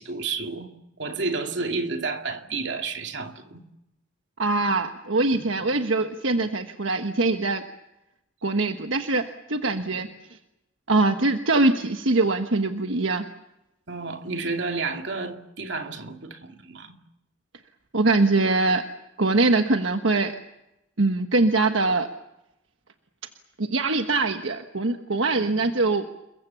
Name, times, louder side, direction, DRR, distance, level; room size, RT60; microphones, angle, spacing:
voice 1, 0.0-3.6 5.3-5.7 6.4-6.5 9.8-9.9 13.9-17.0 25.3-25.7, right 4 dB, 65° right, 2.5 m, -31 dB
voice 2, 4.4-7.6 8.4-10.1 10.9-13.2 17.9-18.8 19.2-20.3 21.0-22.1 23.6-26.1, right 3 dB, 85° right, 1.3 m, -23 dB
29.0 x 22.5 x 7.1 m
head